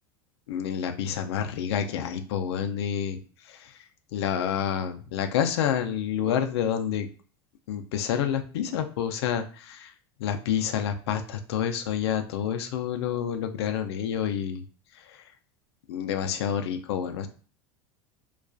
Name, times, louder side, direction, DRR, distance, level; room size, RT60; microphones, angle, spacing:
voice 1, 0.5-3.8 4.1-7.1 7.7-9.9 10.2-14.6 14.9-15.2 15.9-17.3, left 9 dB, 85° left, 7 dB, 0.4 m, -28 dB
2.4 x 2.3 x 2.3 m, 0.39 s
supercardioid pair, 105°, 13 cm